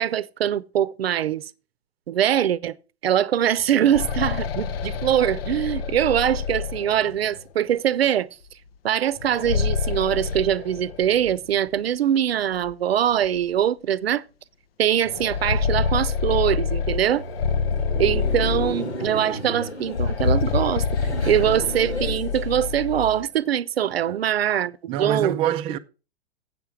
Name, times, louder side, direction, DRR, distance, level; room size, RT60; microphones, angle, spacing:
voice 1, 0.0-1.5 2.1-2.8 3.0-8.3 8.8-14.2 14.8-17.2 18.0-25.5, right 10 dB, 65° right, 0.7 m, -23 dB
sound 1, 3.6-7.4 9.2-11.4 11.7-11.8 12.7-12.8 13.2-13.4 15.0-19.2 19.8-23.2, left 5 dB, 60° left, 0.7 m, -27 dB
Laughter, 16.9-23.2, equal, 85° left, 2.1 m, -34 dB
voice 2, 24.9-25.8, right 11 dB, 15° right, 0.4 m, -25 dB
8.4 x 6.8 x 5.9 m
figure-of-eight pair, 105°, 33 cm